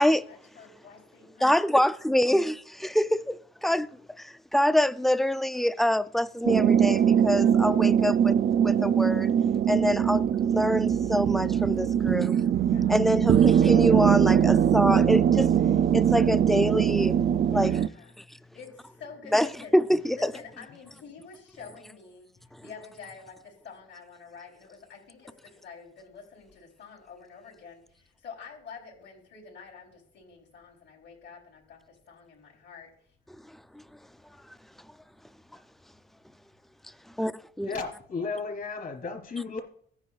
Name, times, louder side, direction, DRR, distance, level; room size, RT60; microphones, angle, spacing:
voice 1, 0.3-1.6 11.5-11.8 12.6-13.1 17.5-18.1 18.5-19.8 20.1-32.9, left 5 dB, 65° left, 3.9 m, -48 dB
voice 2, 1.4-8.3 8.6-9.3 9.7-12.4 12.9-15.5 15.9-17.2 17.5-17.8 18.2-18.4 19.3-20.3 22.5-22.6 33.5-33.8 37.2-37.3 37.6-37.7, equal, ahead, 0.5 m, -26 dB
sound 1, 6.5-17.9, right 9 dB, 50° right, 0.4 m, -22 dB
voice 3, 37.6-39.6, left 4 dB, 50° left, 3.3 m, -34 dB
16.5 x 9.7 x 2.4 m
cardioid pair, 90°, 20 cm